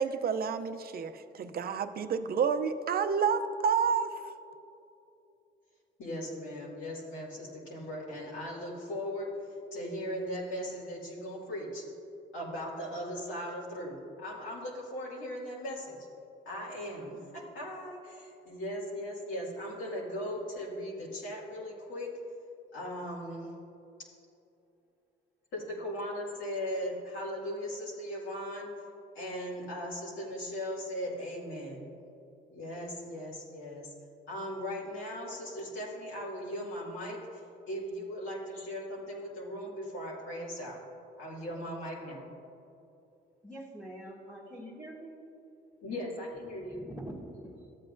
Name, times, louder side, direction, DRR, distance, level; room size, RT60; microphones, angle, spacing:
voice 1, 0.0-4.1, right 6 dB, 50° right, 10 dB, 0.5 m, -29 dB
voice 2, 6.0-9.3 9.7-11.8 12.3-16.0 16.5-17.2 17.5-22.1 22.7-23.5 25.5-28.7 29.1-31.9 32.5-33.9 34.3-37.4 37.7-40.8 41.2-42.3 45.8-46.9, equal, 80° left, -5 dB, 2.2 m, -38 dB
voice 3, 43.4-45.2 46.7-47.7, right 1 dB, 5° right, -7 dB, 1.3 m, -45 dB
14.0 x 7.8 x 2.6 m, 2.8 s
cardioid pair, 90°, 20 cm